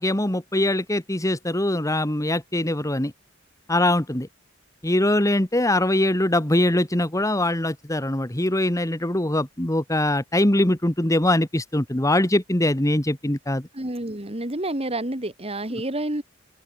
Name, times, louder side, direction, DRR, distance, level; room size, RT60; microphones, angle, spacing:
voice 1, 0.0-3.1 3.7-4.3 4.8-13.7, left 1 dB, 15° left, 1.7 m, -22 dB
voice 2, 13.7-16.2, right 1 dB, 30° right, 3.0 m, -29 dB
open air
head